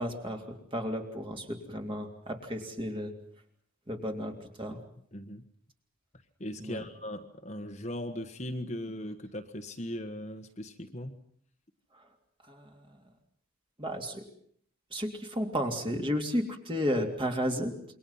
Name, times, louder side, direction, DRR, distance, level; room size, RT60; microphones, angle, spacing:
voice 1, 0.0-3.1 3.9-4.8 6.6-6.8 11.9-12.0 12.5-13.0 13.8-14.3 14.9-17.7, equal, 25° right, 3 dB, 3.0 m, -33 dB
voice 2, 5.1-5.4 6.4-11.2, left 1 dB, 30° left, 5 dB, 1.5 m, -39 dB
28.0 x 23.5 x 5.8 m, 0.63 s
head